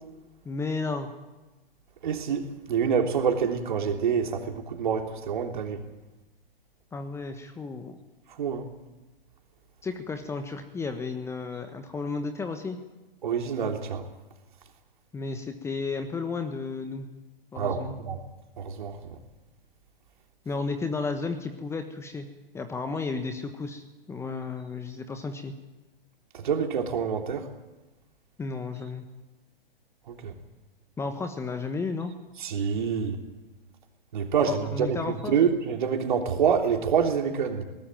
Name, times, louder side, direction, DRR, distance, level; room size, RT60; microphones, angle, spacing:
voice 1, 0.4-1.1 6.9-8.0 9.8-12.8 15.1-17.1 17.5-18.0 20.4-22.3 22.5-25.5 28.4-29.1 31.0-32.1 34.5-35.4, left 4 dB, 10° left, 8 dB, 1.3 m, -33 dB
voice 2, 2.0-5.8 8.4-8.7 13.2-14.0 17.5-18.2 18.6-19.2 26.3-27.5 30.1-30.3 32.4-33.2 34.1-35.0 35.3-37.6, right 7 dB, 55° right, 3 dB, 3.4 m, -27 dB
21.0 x 19.0 x 9.1 m, 1.1 s
figure-of-eight pair, 115°, 29 cm